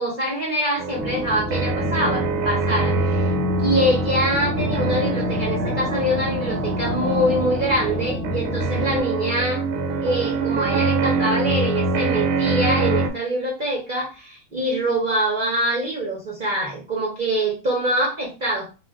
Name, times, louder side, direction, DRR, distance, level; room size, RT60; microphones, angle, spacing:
voice 1, 0.0-3.2 3.6-9.6 10.0-18.7, right 1 dB, 45° right, -3 dB, 0.7 m, -24 dB
sound 1, 0.8-13.1, right 2 dB, 75° right, 1.1 m, -24 dB
sound 2, 0.9-9.0, equal, 15° left, 0.7 m, -31 dB
2.4 x 2.4 x 3.4 m, 0.31 s
omnidirectional pair, 1.7 m